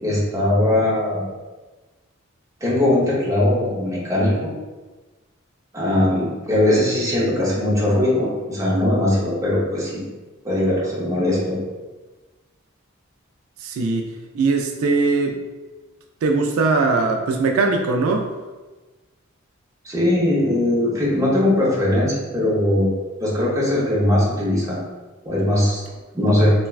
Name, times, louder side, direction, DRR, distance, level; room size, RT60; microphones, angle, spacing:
voice 1, 0.0-1.3 2.6-4.5 5.7-10.0 10.4-11.6 19.8-24.8 25.2-25.8 26.1-26.5, left 1 dB, 15° right, -6 dB, 0.7 m, -20 dB
voice 2, 13.6-15.4 16.2-18.3, right 3 dB, 80° right, 2 dB, 0.3 m, -20 dB
3.2 x 2.2 x 2.3 m, 1.2 s
head